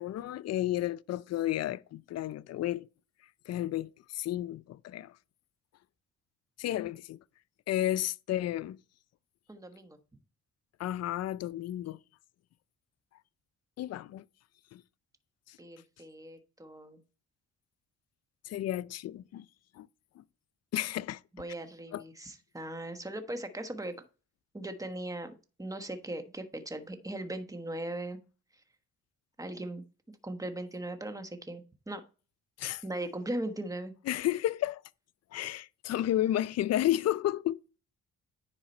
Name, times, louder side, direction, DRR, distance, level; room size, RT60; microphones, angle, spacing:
voice 1, 0.0-2.9 3.5-5.1 6.6-7.2 7.7-8.8 10.8-12.0 13.8-14.2 14.7-14.8 15.5-15.6 18.4-19.4 19.8-19.9 20.2-20.3 20.7-21.2 21.9-22.0 32.6-32.8 34.1-34.8 35.3-37.6, left 13 dB, 55° left, 0.5 m, -32 dB
voice 2, 9.5-10.0 15.6-17.0 21.3-23.9 24.5-25.3 25.6-28.2 29.4-29.8 30.2-32.0 32.8-33.9, right 1 dB, 10° right, 1.3 m, -39 dB
9.9 x 4.8 x 4.3 m
cardioid pair, 90°, 30 cm